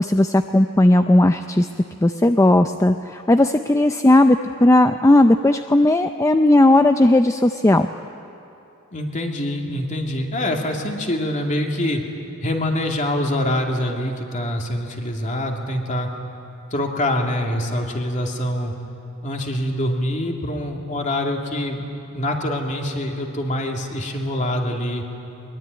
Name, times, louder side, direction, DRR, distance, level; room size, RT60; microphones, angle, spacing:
voice 1, 0.0-1.7 2.0-7.9, left 1 dB, 15° left, 8 dB, 0.5 m, -16 dB
voice 2, 8.9-12.0 12.4-16.1 16.7-18.7 19.2-21.9 22.1-25.0, left 1 dB, 35° left, 1 dB, 2.7 m, -25 dB
22.5 x 21.5 x 9.6 m, 2.8 s
head